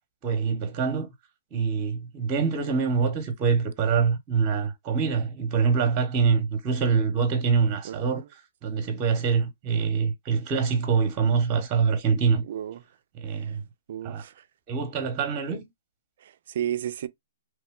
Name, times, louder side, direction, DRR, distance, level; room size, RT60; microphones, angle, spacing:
voice 1, 0.2-1.1 1.5-8.2 8.6-12.5 13.2-13.6 14.0-14.2 14.7-15.7, right 5 dB, 30° right, 0.9 m, -25 dB
voice 2, 7.8-8.3 12.4-12.8 13.3-13.6 13.9-14.5 16.2-17.1, right 10 dB, 60° right, 0.4 m, -34 dB
3.0 x 2.2 x 3.6 m
hypercardioid pair, 140°, 0 cm